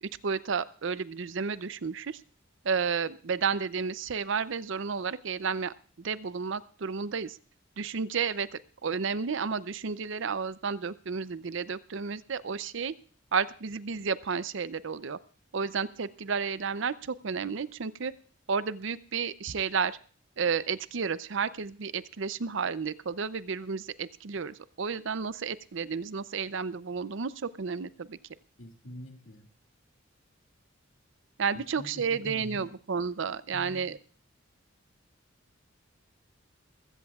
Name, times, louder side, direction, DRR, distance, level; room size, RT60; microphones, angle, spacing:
voice 1, 0.0-2.2 2.6-7.4 7.8-12.9 13.3-15.2 15.5-18.1 18.5-20.0 20.4-28.2 31.4-34.0, right 5 dB, 70° right, 16 dB, 0.6 m, -32 dB
voice 2, 28.6-29.5 31.5-32.7 33.5-33.9, left 1 dB, 85° left, 3 dB, 2.2 m, -45 dB
21.0 x 15.5 x 2.4 m, 0.40 s
head